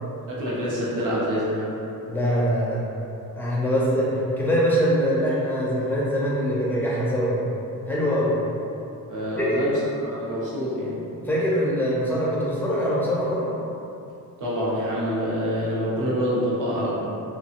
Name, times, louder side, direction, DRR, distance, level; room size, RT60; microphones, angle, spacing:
voice 1, 0.3-1.8 9.1-9.7 10.0-11.0 14.4-17.0, equal, 60° right, -7 dB, 0.7 m, -26 dB
voice 2, 2.1-2.8 3.3-7.5 7.9-8.3 9.3-9.5 11.2-13.5, equal, 5° left, -7 dB, 0.4 m, -23 dB
2.8 x 2.3 x 2.8 m, 2.7 s
wide cardioid pair, 180°, 35 cm